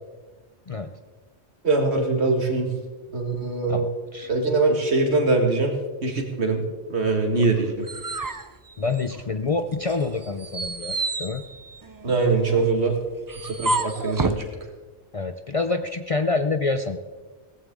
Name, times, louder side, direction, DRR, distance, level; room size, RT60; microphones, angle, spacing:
voice 1, 0.7-1.0 3.7-4.3 8.8-11.4 15.1-17.0, left 3 dB, 40° left, 8 dB, 0.5 m, -27 dB
voice 2, 1.6-2.7 3.1-3.8 4.3-5.7 6.0-6.6 6.9-7.9 12.0-12.9 13.4-14.4, right 3 dB, 70° right, 3 dB, 2.1 m, -22 dB
sound 1, 7.4-9.4 9.8-14.5, right 3 dB, 25° right, 0.4 m, -30 dB
17.0 x 15.0 x 3.7 m, 1.3 s
omnidirectional pair, 1.2 m